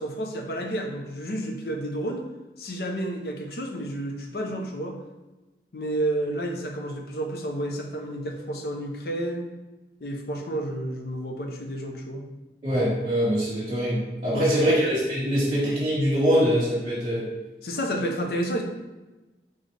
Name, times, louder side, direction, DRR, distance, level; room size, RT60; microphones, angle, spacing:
voice 1, 0.0-2.2 2.6-5.0 5.7-9.5 10.0-12.3 14.3-14.8 17.6-18.6, right 1 dB, 60° left, 2 dB, 0.6 m, -30 dB
voice 2, 12.6-17.3, equal, 40° right, -10 dB, 1.4 m, -23 dB
4.1 x 3.8 x 3.3 m, 1.1 s
head